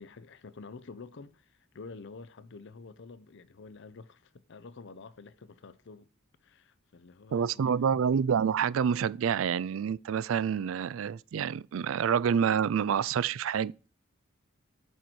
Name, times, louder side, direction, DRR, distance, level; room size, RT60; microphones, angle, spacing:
voice 1, 0.0-6.1 6.4-7.9, left 4 dB, 65° left, 0.6 m, -49 dB
voice 2, 7.3-13.9, right 7 dB, 85° right, 0.4 m, -28 dB
6.5 x 4.4 x 6.2 m
head